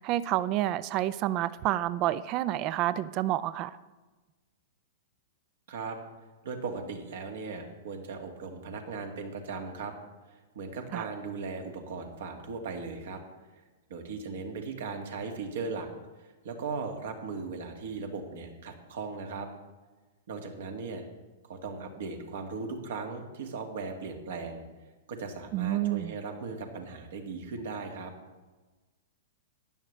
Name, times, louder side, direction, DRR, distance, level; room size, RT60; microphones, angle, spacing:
voice 1, 0.0-3.8 10.9-11.1 25.5-26.1, right 14 dB, 40° right, 17 dB, 0.5 m, -29 dB
voice 2, 6.4-9.9 10.3-13.2 13.9-15.9 16.2-19.5 20.3-21.0 21.5-24.6 25.1-28.1, right 4 dB, 65° right, 4 dB, 2.0 m, -38 dB
15.0 x 10.5 x 3.3 m, 1.2 s
hypercardioid pair, 105°, 0 cm